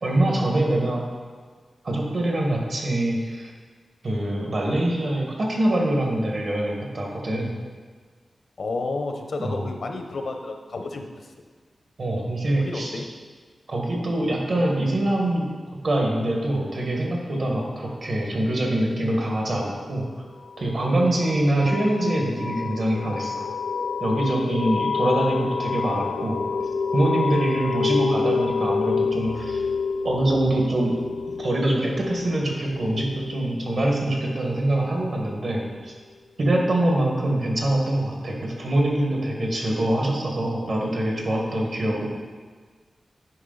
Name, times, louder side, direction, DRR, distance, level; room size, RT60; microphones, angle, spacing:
voice 1, 0.0-1.0 1.8-3.5 4.0-7.5 9.4-9.6 12.0-13.0 13.7-15.5 15.8-20.0 20.6-23.5 24.0-26.4 26.9-29.6 30.0-31.0 31.4-35.9 36.4-42.1, right 1 dB, 55° right, -1 dB, 1.6 m, -24 dB
voice 2, 8.6-11.1 12.6-13.1, left 3 dB, 65° left, 5 dB, 0.7 m, -31 dB
sound 1, 20.4-34.8, left 5 dB, 85° left, 0.9 m, -29 dB
9.6 x 5.2 x 3.9 m, 1.5 s
wide cardioid pair, 145°, 0 cm